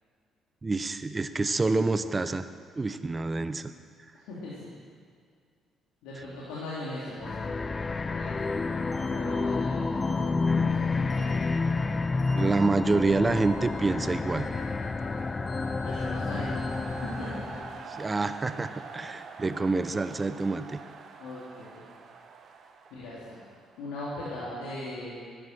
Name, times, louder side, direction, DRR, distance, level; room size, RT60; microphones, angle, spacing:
voice 1, 0.6-2.5 2.8-3.7 12.4-14.5 18.0-20.8, right 3 dB, 30° right, 11 dB, 0.8 m, -27 dB
voice 2, 4.1-4.8 6.0-7.8 8.1-8.4 9.1-11.5 15.8-17.3 17.8-18.0 21.2-21.8 22.9-23.4 23.8-25.2, left 1 dB, 80° left, -8 dB, 2.9 m, -39 dB
sound 1, 7.2-17.8, left 4 dB, 35° left, 0.6 m, -29 dB
sound 2, 8.4-17.1, equal, 10° left, 4.4 m, -50 dB
sound 3, 12.3-24.3, right 5 dB, 55° right, 1.3 m, -47 dB
11.5 x 10.5 x 7.4 m, 2.1 s
hypercardioid pair, 55°, 0 cm